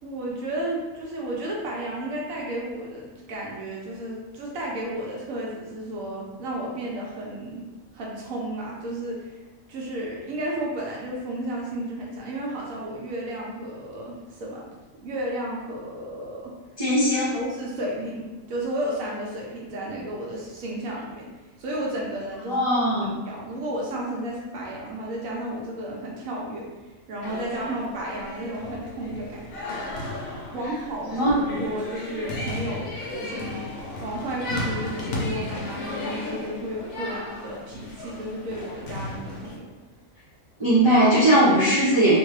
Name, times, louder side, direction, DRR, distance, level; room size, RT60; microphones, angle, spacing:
voice 1, 0.0-7.7 7.9-9.3 9.7-14.7 15.0-16.5 17.3-21.3 21.6-22.7 23.0-26.7 27.1-29.7 30.5-33.7 34.0-39.7, right 1 dB, 80° right, -3 dB, 1.2 m, -33 dB
voice 2, 16.8-17.3 22.5-23.2 31.1-31.6 40.6-42.2, right 1 dB, 25° right, -11 dB, 0.8 m, -19 dB
sound 1, 27.2-39.6, left 2 dB, 85° left, 1.1 m, -34 dB
3.0 x 2.2 x 3.1 m, 1.2 s
omnidirectional pair, 1.4 m